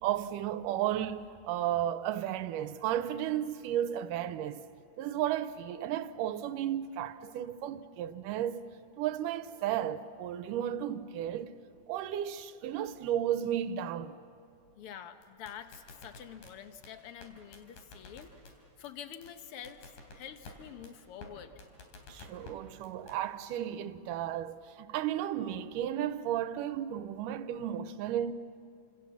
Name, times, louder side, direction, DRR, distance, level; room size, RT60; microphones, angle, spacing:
voice 1, 0.0-4.6 5.0-8.6 9.0-11.5 11.9-14.2 22.1-28.3, right 11 dB, 80° right, 2.4 m, -33 dB
voice 2, 14.8-18.3 18.8-21.5, left 9 dB, 60° left, 1.6 m, -47 dB
sound 1, 15.2-16.5 16.8-16.9 17.2-17.3 17.5-18.5 18.8-18.9 19.2-19.3 19.6-20.5 20.8-20.9 21.2-21.3 21.6-22.5 22.8-23.1, left 3 dB, 80° left, 4.8 m, -49 dB
29.5 x 27.0 x 7.2 m
omnidirectional pair, 3.7 m